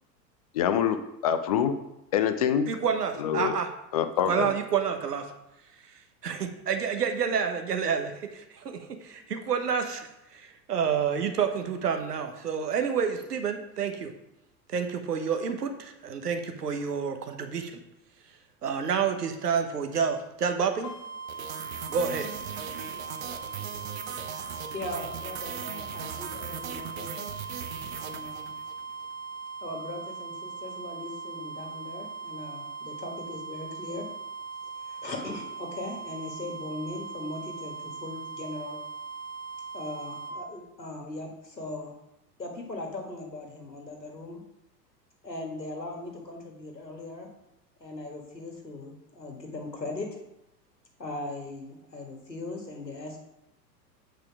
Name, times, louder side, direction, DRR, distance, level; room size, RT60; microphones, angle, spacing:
voice 1, 0.5-1.7 2.1-2.7 3.2-3.6 3.9-4.5, left 9 dB, 25° left, 10 dB, 0.3 m, -25 dB
voice 2, 2.7-3.7 4.2-5.2 6.2-14.1 14.7-17.8 18.6-20.9 21.9-22.3, right 6 dB, 70° right, 6 dB, 1.2 m, -29 dB
sound 1, 20.8-40.4, right 5 dB, 45° left, 1.7 m, -40 dB
sound 2, 21.3-28.8, right 8 dB, 55° right, 0.9 m, -39 dB
voice 3, 24.7-27.3 28.0-28.5 29.6-34.1 34.8-38.8 39.7-41.9 42.4-44.4 45.2-47.3 47.8-50.1 51.0-53.2, left 2 dB, 85° left, 1 dB, 1.7 m, -39 dB
8.3 x 4.9 x 4.7 m, 0.87 s
figure-of-eight pair, 90°, 49 cm